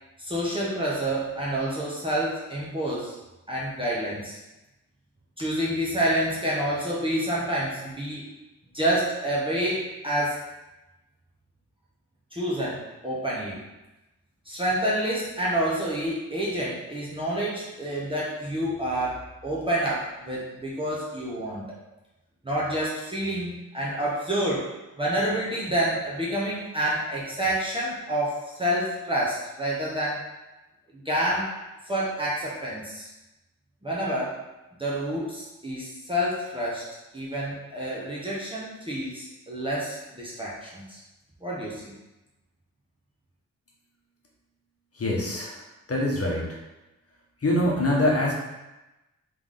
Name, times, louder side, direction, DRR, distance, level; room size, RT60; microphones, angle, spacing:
voice 1, 0.2-3.2 3.5-4.4 5.4-8.2 8.7-10.4 12.3-13.6 14.5-21.8 22.4-24.7 25.0-30.3 30.9-31.6 31.8-33.1 33.8-34.4 34.8-36.9 37.1-41.0 41.4-41.9, right 1 dB, 15° right, -7 dB, 1.0 m, -28 dB
voice 2, 44.9-45.6 45.9-46.6 47.4-48.3, left 1 dB, 45° left, -2 dB, 1.1 m, -24 dB
3.5 x 3.4 x 3.7 m, 1.0 s
cardioid pair, 75°, 33 cm